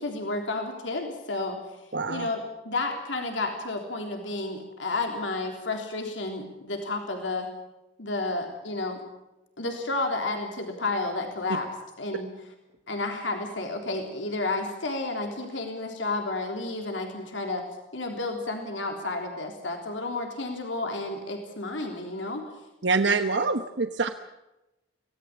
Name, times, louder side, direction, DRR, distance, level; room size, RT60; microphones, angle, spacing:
voice 1, 0.0-1.6 2.1-7.5 8.0-9.0 9.6-11.7 12.0-12.3 12.9-17.6 17.9-22.4, left 2 dB, 80° left, 3 dB, 3.6 m, -31 dB
voice 2, 1.9-2.3 22.8-24.1, right 4 dB, 70° right, 8 dB, 1.1 m, -25 dB
25.0 x 18.0 x 8.5 m, 0.96 s
head